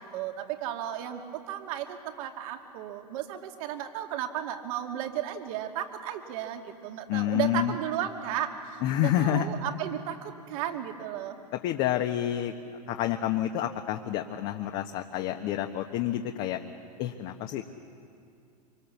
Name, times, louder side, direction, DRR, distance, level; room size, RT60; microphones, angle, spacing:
voice 1, 0.0-11.4, right 11 dB, 55° right, 5 dB, 2.4 m, -34 dB
voice 2, 7.1-7.7 8.8-9.5 11.6-12.5 12.9-16.6 17.0-17.7, left 12 dB, 50° left, 4 dB, 1.4 m, -28 dB
26.0 x 25.0 x 7.1 m, 2.5 s
hypercardioid pair, 90°, 21 cm